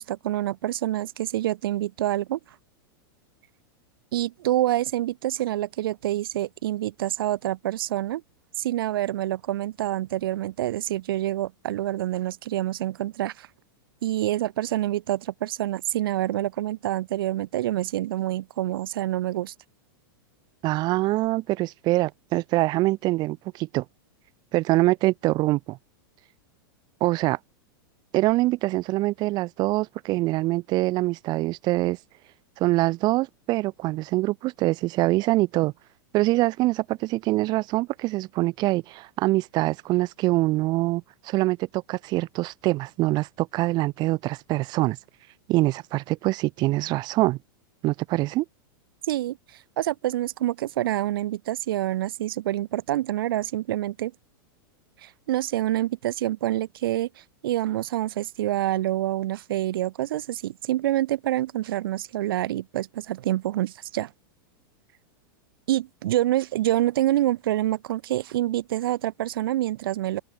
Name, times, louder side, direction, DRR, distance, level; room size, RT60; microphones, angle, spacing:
voice 1, 0.0-2.4 4.1-8.2 8.6-13.5 14.0-19.5 49.0-54.1 55.0-64.1 65.7-70.2, right 14 dB, 75° right, 0.7 m, -27 dB
voice 2, 20.6-23.8 24.5-25.8 27.0-27.4 28.1-32.0 32.6-35.7 36.1-45.0 45.5-47.4 47.8-48.5, right 19 dB, 35° right, 0.6 m, -24 dB
open air
hypercardioid pair, 130°, 12 cm